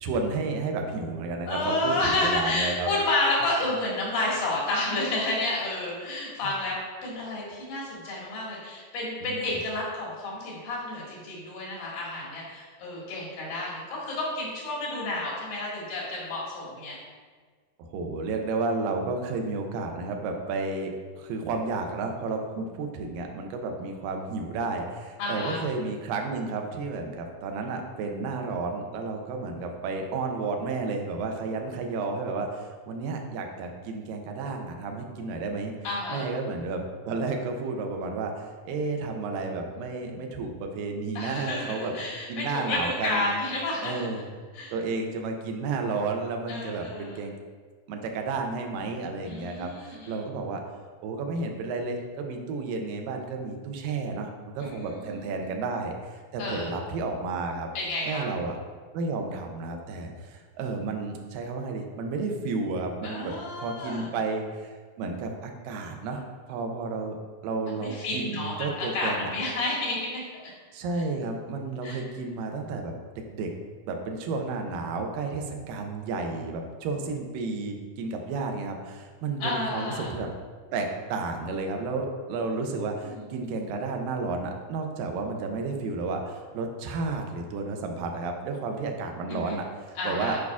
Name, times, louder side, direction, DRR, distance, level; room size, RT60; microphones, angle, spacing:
voice 1, 0.0-2.9 6.4-6.5 9.2-9.5 17.8-35.7 36.1-41.9 42.3-43.3 43.8-44.3 44.7-47.3 47.9-50.6 51.0-57.7 58.1-58.6 58.9-63.3 63.6-64.7 65.0-67.2 67.4-69.3 70.7-73.5 73.9-80.3 80.7-90.4, right 3 dB, 80° right, 3 dB, 2.4 m, -32 dB
voice 2, 1.5-17.0 25.2-25.6 35.8-36.3 41.2-44.0 44.5-44.7 46.5-47.2 49.3-50.2 54.6-55.3 56.4-56.7 57.8-58.3 63.0-64.1 67.8-70.5 71.8-72.0 79.4-80.1 82.5-83.2 89.3-89.5 90.0-90.4, left 2 dB, 80° left, -6 dB, 3.7 m, -30 dB
10.5 x 4.7 x 2.4 m, 1.5 s
omnidirectional pair, 4.0 m